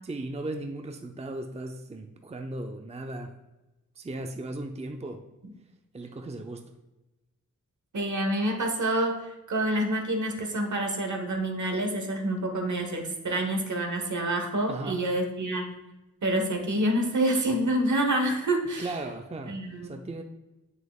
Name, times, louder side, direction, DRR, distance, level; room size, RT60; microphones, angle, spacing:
voice 1, 0.0-3.3 4.0-5.2 5.9-6.7 14.7-15.0 18.8-19.5 19.8-20.2, right 2 dB, 20° right, 5 dB, 0.5 m, -36 dB
voice 2, 7.9-15.7 16.2-18.9 19.5-19.9, right 1 dB, 65° right, 3 dB, 1.1 m, -27 dB
7.4 x 6.5 x 2.4 m, 1.0 s
cardioid pair, 50°, 33 cm